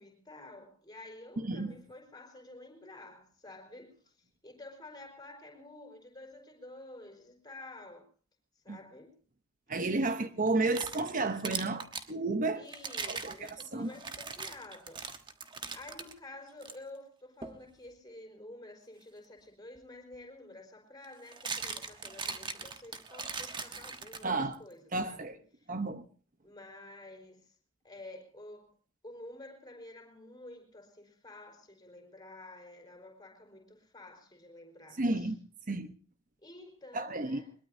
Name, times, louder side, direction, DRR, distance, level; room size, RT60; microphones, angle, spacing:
voice 1, 0.0-4.2 4.4-8.1 8.6-9.2 9.7-10.3 12.5-15.0 15.7-25.7 26.4-27.5 27.8-28.7 29.0-35.3 36.4-37.5, left 2 dB, 20° left, 4.7 m, -50 dB
voice 2, 1.4-1.8 8.7-8.8 9.7-12.6 13.1-13.9 24.2-24.6 24.9-25.4 25.7-26.0 35.0-35.4 35.7-35.9 36.9-37.4, right 2 dB, 40° right, 1.0 m, -32 dB
sound 1, 10.5-12.1 12.7-16.1 16.6-16.8 17.4-17.6 19.8-19.9 21.0-24.5, right 5 dB, 25° right, 1.3 m, -40 dB
22.0 x 22.0 x 2.8 m
head